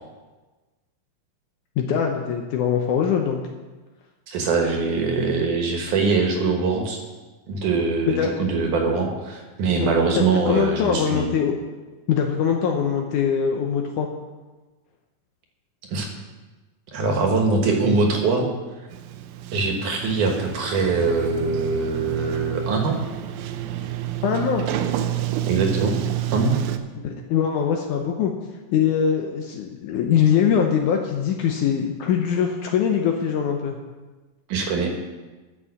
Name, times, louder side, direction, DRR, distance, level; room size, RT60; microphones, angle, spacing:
voice 1, 1.8-3.4 8.1-8.4 9.8-11.5 12.1-14.1 24.2-24.7 27.0-28.3 28.7-33.8, left 7 dB, 75° left, 3 dB, 2.0 m, -22 dB
voice 2, 4.3-7.0 7.5-11.3 15.9-16.1 16.9-18.5 19.5-23.0 25.5-26.0 26.3-26.5 34.5-34.9, right 4 dB, 65° right, 2 dB, 2.7 m, -22 dB
Sliding door, 18.9-26.8, right 12 dB, 85° right, 2.5 m, -29 dB
12.5 x 6.1 x 7.2 m, 1.2 s
omnidirectional pair, 4.2 m